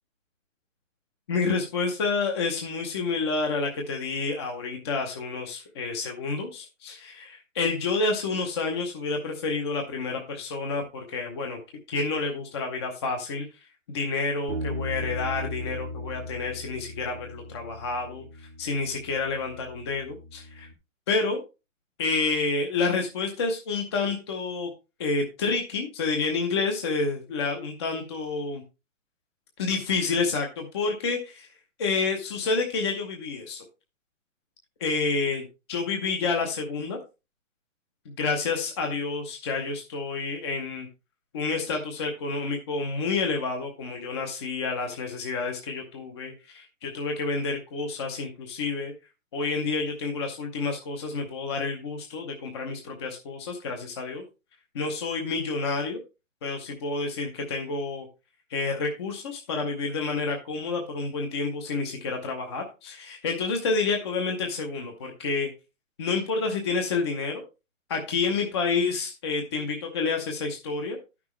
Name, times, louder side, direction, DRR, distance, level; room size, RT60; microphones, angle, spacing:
voice 1, 1.3-11.6 11.9-13.5 13.9-20.7 21.1-21.4 22.0-24.7 25.0-28.6 29.6-31.5 31.8-33.6 34.8-37.0 38.1-40.9 41.3-48.9 49.3-54.2 54.7-56.0 56.4-58.1 58.5-65.5 66.0-67.4 67.9-71.0, left 4 dB, 20° left, 3 dB, 0.7 m, -29 dB
Bass guitar, 14.5-20.7, left 1 dB, 25° right, 0.7 m, -37 dB
12.5 x 6.0 x 3.1 m, 0.27 s
hypercardioid pair, 170°, 39 cm